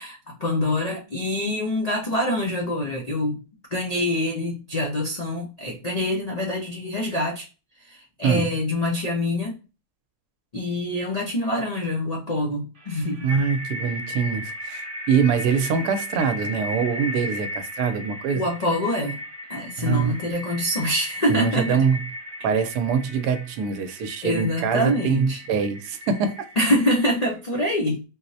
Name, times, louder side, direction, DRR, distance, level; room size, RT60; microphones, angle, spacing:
voice 1, 0.0-3.4 3.7-7.5 7.8-9.6 10.5-13.3 18.4-19.2 19.5-21.8 24.2-25.4 26.6-28.0, left 1 dB, 70° left, 0.3 m, -25 dB
sound 1, 12.8-27.1, left 1 dB, 35° right, 1.1 m, -36 dB
voice 2, 13.2-18.4 19.8-20.2 21.3-22.0 22.4-26.5, right 6 dB, 80° right, 1.1 m, -24 dB
4.3 x 2.0 x 2.6 m
omnidirectional pair, 1.7 m